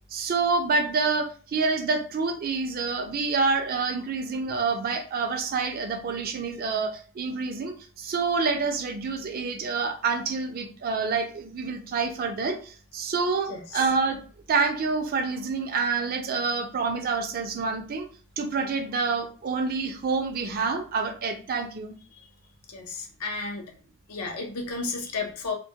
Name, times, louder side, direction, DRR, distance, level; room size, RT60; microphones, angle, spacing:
voice 1, 0.1-14.2 14.5-18.1 18.4-21.9, right 4 dB, 40° right, 5 dB, 0.4 m, -27 dB
voice 2, 22.7-23.6 24.1-25.5, left 4 dB, 85° left, 3 dB, 0.6 m, -32 dB
2.1 x 2.1 x 2.7 m, 0.41 s
head